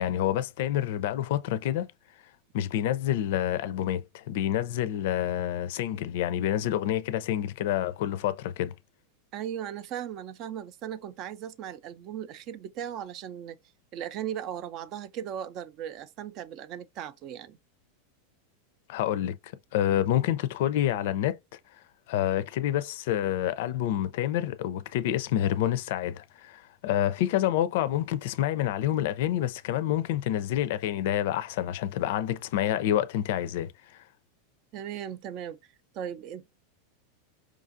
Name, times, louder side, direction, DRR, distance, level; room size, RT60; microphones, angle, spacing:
voice 1, 0.0-1.9 2.5-8.7 18.9-19.4 19.7-21.4 22.1-34.0, left 12 dB, 65° left, 0.4 m, -28 dB
voice 2, 9.3-13.6 13.9-17.6 34.7-35.6 35.9-36.5, right 10 dB, 45° right, 0.4 m, -37 dB
4.8 x 2.4 x 2.5 m
hypercardioid pair, 120°, 0 cm